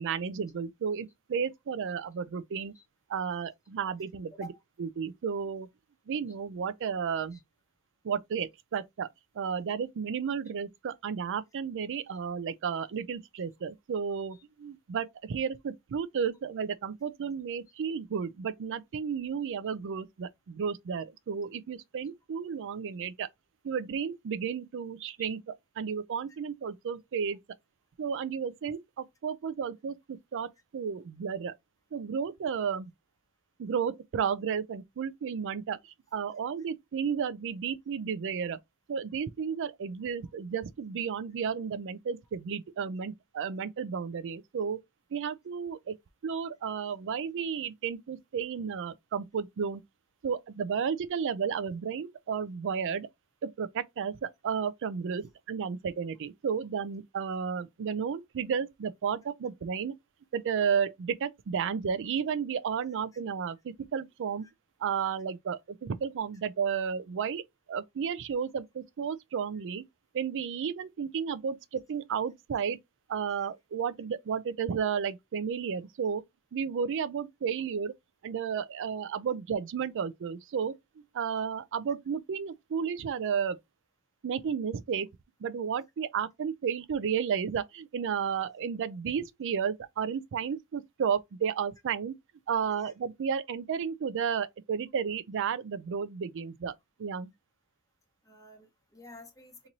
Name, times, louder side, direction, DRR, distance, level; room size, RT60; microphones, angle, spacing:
voice 1, 0.0-2.7 3.1-4.5 4.8-5.7 6.1-7.4 8.0-23.3 23.6-27.4 28.0-31.5 31.9-32.9 33.6-35.8 36.1-38.6 38.9-44.8 45.1-46.0 46.2-49.8 50.2-53.1 53.4-59.9 60.3-64.5 64.8-67.4 67.7-69.8 70.1-72.8 73.1-76.2 76.5-77.9 78.2-80.7 81.1-83.6 84.2-85.1 85.4-92.1 92.5-96.7 97.0-97.3, right 7 dB, 55° right, 0.4 m, -33 dB
voice 2, 98.3-99.7, left 2 dB, 15° left, 1.1 m, -50 dB
3.0 x 2.6 x 4.0 m
head